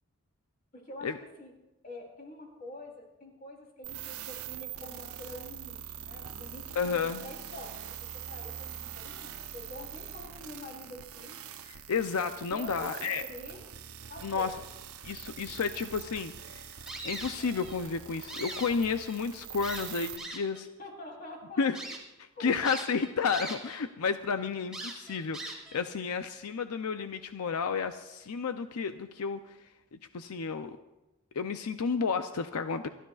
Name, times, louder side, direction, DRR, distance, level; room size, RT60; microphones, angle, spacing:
voice 1, 0.7-1.5 1.8-7.8 8.3-11.4 12.5-13.6 14.1-14.5 20.8-21.6 22.4-22.6, left 1 dB, 40° left, 0 dB, 3.4 m, -46 dB
sound 1, 3.8-20.2, right 9 dB, 80° right, 0.8 m, -44 dB
voice 2, 6.8-7.2 11.6-13.2 14.2-14.5 15.0-20.7 21.6-21.8 22.2-30.8 31.3-32.9, left 5 dB, 90° left, 9 dB, 0.6 m, -32 dB
sound 2, 16.9-17.8 18.1-19.2 19.6-20.6 21.2-21.3 21.7-22.0 22.6-23.8 24.1-24.2 24.7-25.8, right 2 dB, 5° right, 2.2 m, -41 dB
28.0 x 13.0 x 2.4 m, 0.98 s
head